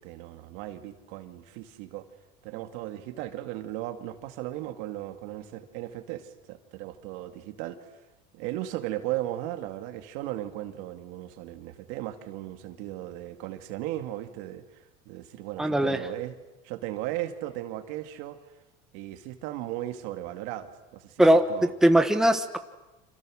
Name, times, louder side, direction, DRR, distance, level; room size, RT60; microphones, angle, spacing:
voice 1, 0.0-2.1 2.4-7.9 8.3-16.4 16.6-18.4 18.9-21.7, right 14 dB, 75° right, 7 dB, 2.2 m, -36 dB
voice 2, 15.6-16.0 21.2-21.4 21.8-22.6, right 1 dB, ahead, 7 dB, 1.4 m, -20 dB
29.5 x 26.5 x 6.5 m, 1.0 s
supercardioid pair, 125°, 21 cm